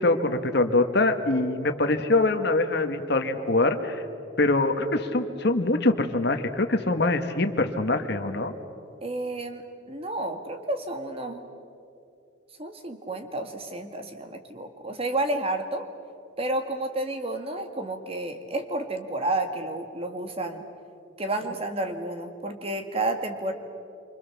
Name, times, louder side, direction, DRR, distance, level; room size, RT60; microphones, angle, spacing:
voice 1, 0.0-4.0 4.4-8.5, left 2 dB, 60° left, 7 dB, 1.6 m, -24 dB
voice 2, 9.0-11.5 12.6-15.9 16.4-20.6 21.2-23.5, right 2 dB, 30° right, 6 dB, 1.9 m, -31 dB
28.0 x 25.0 x 7.2 m, 2.6 s
head